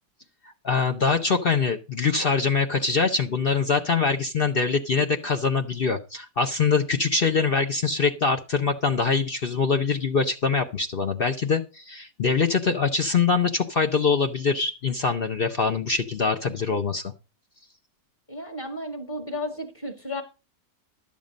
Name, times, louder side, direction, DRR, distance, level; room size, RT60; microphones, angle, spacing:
voice 1, 0.6-17.1, left 5 dB, 50° left, 7 dB, 0.7 m, -24 dB
voice 2, 18.3-20.2, left 1 dB, 25° left, 6 dB, 2.2 m, -33 dB
12.0 x 7.4 x 5.1 m, 0.30 s
omnidirectional pair, 1.8 m